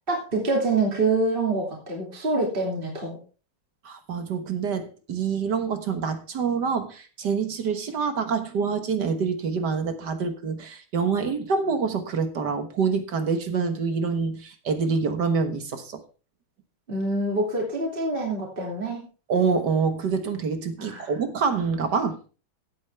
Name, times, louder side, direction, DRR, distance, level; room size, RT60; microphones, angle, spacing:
voice 1, 0.1-3.2 16.9-19.0 20.8-21.1, right 2 dB, 25° right, 2.9 m, -26 dB
voice 2, 3.8-16.0 19.3-22.2, right 5 dB, 55° right, 1.8 m, -26 dB
15.5 x 8.5 x 3.4 m
omnidirectional pair, 2.4 m